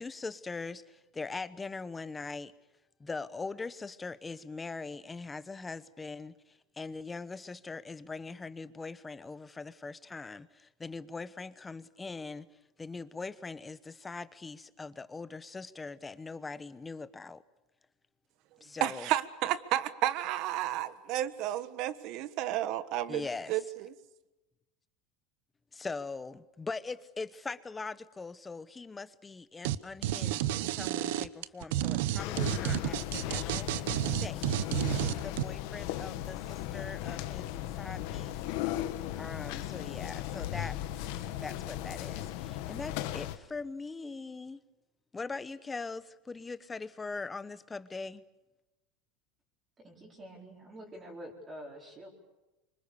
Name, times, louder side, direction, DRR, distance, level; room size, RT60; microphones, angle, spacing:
voice 1, 0.0-2.5 3.0-12.5 12.8-17.4 18.6-19.1 23.1-23.5 25.7-33.9 34.2-37.5 37.7-38.4 39.2-40.8 41.4-44.6 45.1-48.2, left 4 dB, 15° left, 0.9 m, -41 dB
voice 2, 18.8-23.6, right 13 dB, 50° right, 1.4 m, -32 dB
sound 1, 29.6-29.8 30.0-35.4, right 13 dB, 75° right, 0.9 m, -30 dB
sound 2, 32.2-43.4, left 13 dB, 65° left, 1.6 m, -37 dB
voice 3, 49.8-52.1, equal, 20° right, 4.4 m, -47 dB
27.5 x 25.0 x 7.1 m
supercardioid pair, 150°, 0 cm